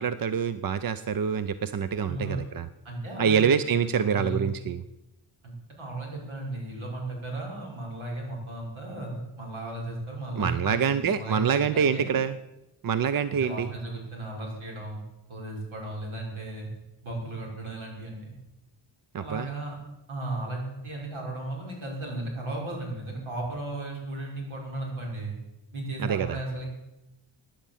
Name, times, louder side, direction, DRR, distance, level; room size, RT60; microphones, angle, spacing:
voice 1, 0.0-2.7 3.2-4.8 10.4-12.4 12.8-13.7 19.1-19.5 26.0-26.4, right 7 dB, 45° right, 13 dB, 0.6 m, -26 dB
voice 2, 2.0-2.4 2.8-4.4 5.4-12.2 13.3-15.0 15.3-16.7 17.0-18.4 19.2-19.8 20.1-25.4 25.7-26.7, right 2 dB, 75° right, -1 dB, 5.7 m, -35 dB
16.0 x 10.5 x 7.2 m, 0.96 s
wide cardioid pair, 145°, 48 cm